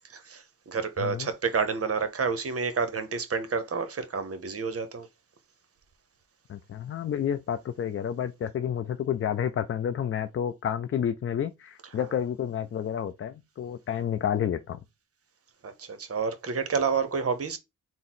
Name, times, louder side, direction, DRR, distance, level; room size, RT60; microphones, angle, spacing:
voice 1, 0.1-5.1 15.6-17.6, right 5 dB, 45° right, 0.8 m, -29 dB
voice 2, 1.0-1.3 6.5-14.8, left 9 dB, 45° left, 0.4 m, -30 dB
3.7 x 2.0 x 4.1 m
cardioid pair, 65°, 32 cm